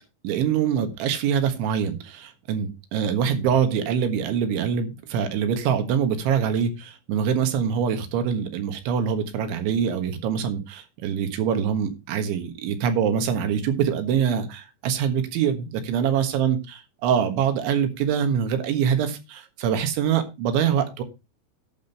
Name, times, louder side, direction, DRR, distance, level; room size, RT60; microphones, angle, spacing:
voice 1, 0.2-21.0, right 8 dB, 75° right, 8 dB, 3.7 m, -24 dB
11.5 x 6.1 x 5.6 m, 0.27 s
omnidirectional pair, 5.7 m